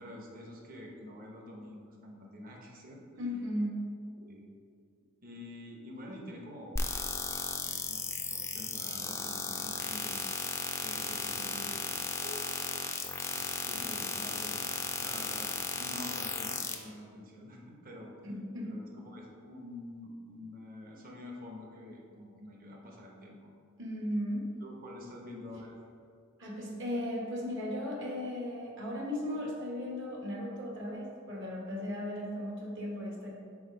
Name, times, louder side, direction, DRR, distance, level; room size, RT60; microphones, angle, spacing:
voice 1, 0.0-3.0 4.2-4.5 5.2-6.8 7.2-10.2 10.7-11.9 13.3-14.6 15.0-18.1 18.6-23.4 24.6-25.8, left 1 dB, 45° right, 0 dB, 0.9 m, -47 dB
voice 2, 3.2-3.8 12.2-12.3 18.2-18.8 23.8-24.5 26.4-33.3, left 1 dB, 60° right, -2 dB, 1.2 m, -36 dB
sound 1, 6.8-16.7, left 4 dB, 15° left, 0.4 m, -35 dB
4.8 x 4.1 x 5.1 m, 2.3 s
head